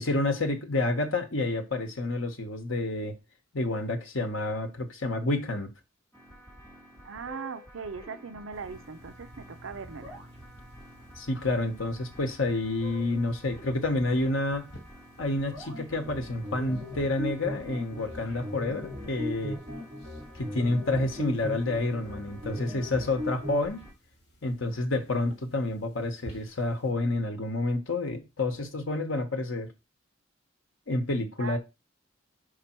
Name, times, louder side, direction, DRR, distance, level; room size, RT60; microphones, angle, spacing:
voice 1, 0.0-3.2 3.5-5.7 11.1-14.7 15.2-19.6 20.4-23.8 24.4-29.7 30.9-31.6, left 2 dB, 75° left, 1.1 m, -29 dB
sound 1, 6.1-23.9, equal, 15° left, 2.3 m, -50 dB
voice 2, 7.0-10.2 31.4-31.6, right 5 dB, 75° right, 0.6 m, -39 dB
sound 2, 8.5-26.9, right 1 dB, 55° left, 2.0 m, -54 dB
sound 3, 15.7-23.7, left 1 dB, 30° right, 2.6 m, -38 dB
5.1 x 4.8 x 4.4 m
head